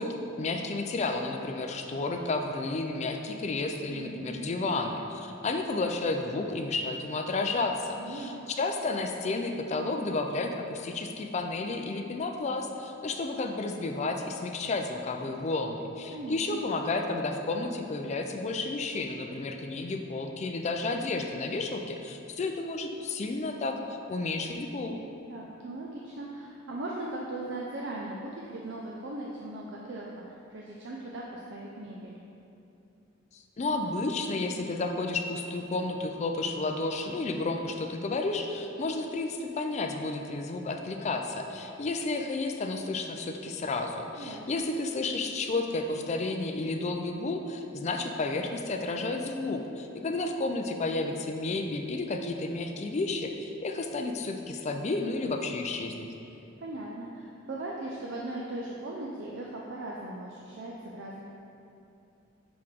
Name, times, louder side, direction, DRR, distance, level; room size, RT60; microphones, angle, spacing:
voice 1, 0.0-25.0 33.3-56.1, left 3 dB, 35° left, 4 dB, 0.4 m, -32 dB
voice 2, 3.9-4.5 8.0-8.4 16.1-16.6 25.3-32.2 44.2-44.7 56.6-61.3, right 2 dB, 60° right, -3 dB, 0.5 m, -39 dB
6.1 x 4.8 x 3.6 m, 2.7 s
head